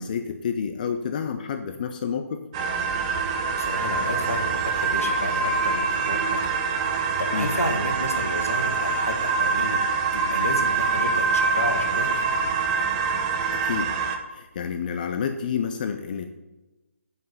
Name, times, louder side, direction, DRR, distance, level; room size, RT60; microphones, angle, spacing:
voice 1, 0.0-2.4 7.3-7.5 13.5-13.9 14.3-16.3, left 7 dB, 35° left, 8 dB, 0.6 m, -29 dB
sound 1, 2.5-14.2, right 4 dB, 25° right, 0.9 m, -25 dB
voice 2, 3.6-6.6 6.8-9.8 10.1-12.5, left 1 dB, 80° left, 4 dB, 1.9 m, -32 dB
9.1 x 5.7 x 6.6 m, 1.0 s
figure-of-eight pair, 145°, 8 cm